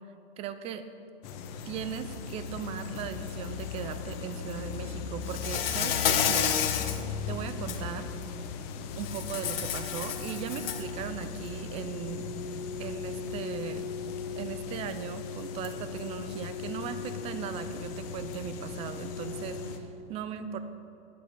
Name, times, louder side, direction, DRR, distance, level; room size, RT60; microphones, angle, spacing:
voice 1, 0.4-0.9 1.7-6.6 7.3-8.1 8.9-12.3 12.8-13.9 14.4-20.6, right 8 dB, 20° right, 10 dB, 0.6 m, -38 dB
sound 1, 1.2-19.8, left 5 dB, 35° left, 1.0 m, -38 dB
Insect, 5.3-7.0 7.5-7.8 9.0-10.9, left 8 dB, 65° left, 1.3 m, -30 dB
12.0 x 7.8 x 8.3 m, 2.6 s
hypercardioid pair, 150°, 31 cm